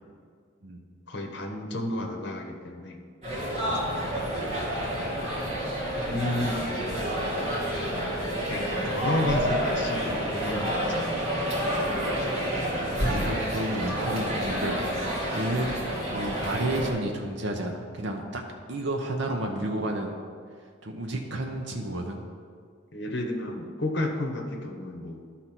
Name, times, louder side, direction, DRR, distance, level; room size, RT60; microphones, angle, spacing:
voice 1, 1.1-3.0 3.8-4.0 6.1-6.6 8.5-11.2 19.2-19.5 19.8-19.9 22.9-25.2, left 1 dB, 55° left, 3 dB, 1.1 m, -32 dB
sound 1, 3.2-16.9, equal, 30° right, 2.3 m, -29 dB
voice 2, 3.7-4.0 12.8-14.8 15.3-15.9 16.1-18.4 18.7-20.1 20.8-22.2, right 1 dB, 60° right, 2 dB, 0.8 m, -31 dB
11.0 x 4.2 x 6.0 m, 2.1 s
head